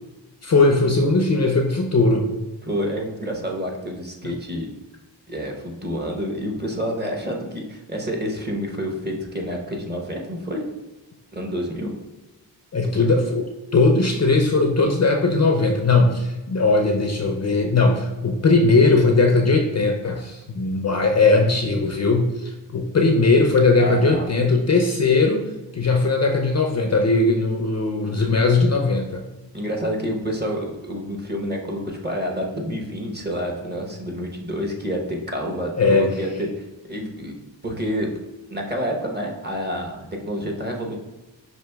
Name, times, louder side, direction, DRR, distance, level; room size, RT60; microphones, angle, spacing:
voice 1, 0.4-2.3 12.7-13.5 13.7-29.2 35.8-36.1, left 3 dB, 40° left, 2 dB, 0.5 m, -19 dB
voice 2, 2.6-4.7 5.3-10.6 11.3-11.9 12.9-13.1 23.8-24.3 29.5-37.4 37.6-38.1 38.5-41.0, equal, 25° right, 1 dB, 0.8 m, -28 dB
6.0 x 2.5 x 2.2 m, 1.1 s
cardioid pair, 45°, 44 cm